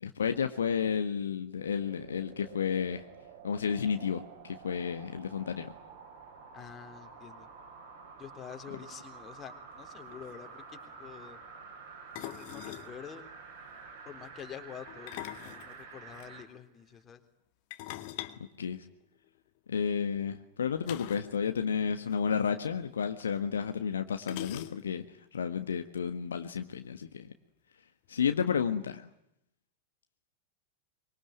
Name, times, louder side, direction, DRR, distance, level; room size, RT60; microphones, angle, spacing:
voice 1, 0.0-3.0 3.4-5.7 18.6-18.8 19.7-25.0 25.3-27.3 28.1-29.0, left 7 dB, 70° left, 7 dB, 1.5 m, -31 dB
sound 1, 1.5-16.5 16.9-17.0, right 5 dB, 55° right, 6.2 m, -49 dB
voice 2, 6.5-7.5 8.2-10.6 11.0-11.4 12.2-13.3 14.1-15.1 15.4-17.2, left 8 dB, 25° left, 5 dB, 3.7 m, -47 dB
sound 2, 9.8-9.9 10.1-10.3 12.1-12.9 14.9-16.3 17.7-19.4 20.8-21.4 21.6-21.7 22.0-22.2 23.2-23.3 24.2-25.1, left 15 dB, 45° left, 2.0 m, -43 dB
24.5 x 24.0 x 9.5 m, 0.80 s
figure-of-eight pair, 90°, 0 cm